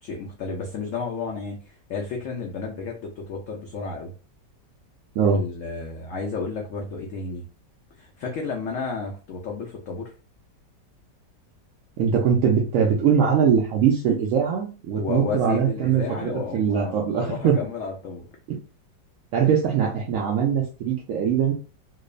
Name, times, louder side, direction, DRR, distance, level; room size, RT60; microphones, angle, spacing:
voice 1, 0.0-4.1 5.2-7.4 8.0-10.1 15.0-18.3, left 4 dB, 75° left, 0 dB, 0.7 m, -32 dB
voice 2, 12.0-17.6 18.5-18.6 19.3-21.5, right 7 dB, 80° right, -1 dB, 0.7 m, -22 dB
2.9 x 2.0 x 2.3 m, 0.34 s
omnidirectional pair, 1.9 m